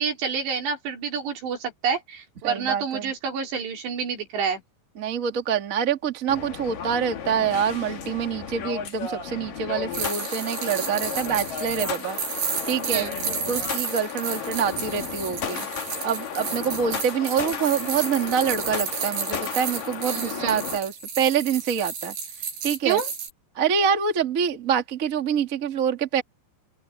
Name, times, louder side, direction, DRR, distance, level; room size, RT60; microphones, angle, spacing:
voice 1, 0.0-4.6 12.8-13.2 20.0-20.6 22.9-23.1, right 6 dB, 85° right, 6.2 m, -28 dB
voice 2, 2.4-3.1 5.0-12.2 12.7-13.1 13.5-15.7 16.0-22.1 22.6-23.0 23.5-26.2, right 7 dB, 35° right, 1.3 m, -26 dB
sound 1, 6.3-20.8, left 7 dB, 55° left, 3.9 m, -34 dB
sound 2, 9.9-23.3, right 6 dB, 70° right, 8.1 m, -32 dB
open air
omnidirectional pair, 4.9 m